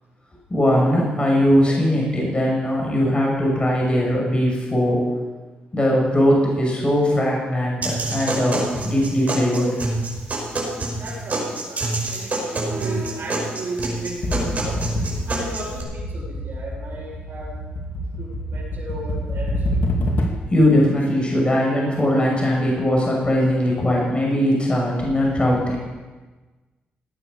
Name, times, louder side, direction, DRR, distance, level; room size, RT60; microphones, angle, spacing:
voice 1, 0.5-5.0 5.7-9.7 20.5-25.8, equal, 30° left, -2 dB, 6.7 m, -20 dB
sound 1, 7.8-15.8, right 2 dB, 40° right, 5.3 m, -27 dB
voice 2, 11.0-14.8 15.3-17.5 18.2-19.8, right 2 dB, 55° right, -10 dB, 6.6 m, -34 dB
sound 2, 14.2-20.6, equal, 55° left, 2.2 m, -27 dB
17.5 x 9.3 x 7.0 m, 1.3 s
supercardioid pair, 60°, 4 cm